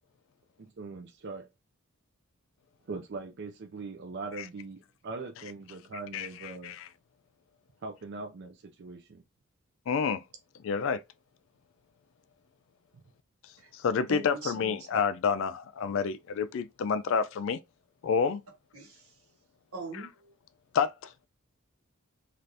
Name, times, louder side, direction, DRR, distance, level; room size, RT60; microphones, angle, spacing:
voice 1, 0.6-1.5 2.9-6.8 7.8-9.2, right 3 dB, 50° right, 0.4 m, -41 dB
voice 2, 6.1-6.9 9.9-10.2 10.6-11.0 13.7-17.6 18.0-18.4 20.7-21.1, left 6 dB, 60° left, 0.3 m, -29 dB
voice 3, 14.1-15.0 18.7-19.0 19.7-20.3, right 2 dB, 80° right, 1.3 m, -41 dB
3.3 x 2.4 x 2.6 m
head